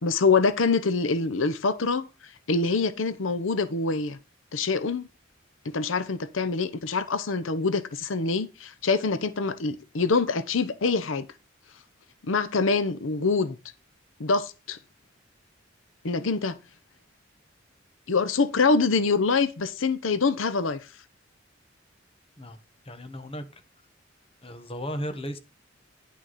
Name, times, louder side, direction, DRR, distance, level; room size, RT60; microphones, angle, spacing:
voice 1, 0.0-2.1 2.5-4.2 4.5-5.1 5.6-11.3 12.3-13.6 14.2-14.8 16.0-16.6 18.1-20.8, left 4 dB, 90° left, 0.8 m, -25 dB
voice 2, 22.8-23.5 24.4-25.4, equal, 30° left, 1.3 m, -35 dB
10.5 x 6.3 x 4.1 m
head